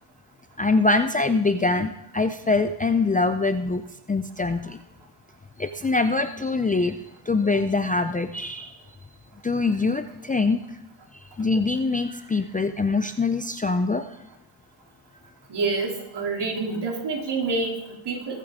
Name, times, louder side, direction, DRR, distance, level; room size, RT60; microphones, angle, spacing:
voice 1, 0.6-3.8 4.1-4.8 5.6-7.0 7.3-8.8 9.4-10.6 11.4-14.1, left 3 dB, 15° left, 9 dB, 0.5 m, -23 dB
voice 2, 15.5-18.4, right 3 dB, 55° right, 0 dB, 3.1 m, -27 dB
21.0 x 8.4 x 3.7 m, 0.82 s
cardioid pair, 95°, 49 cm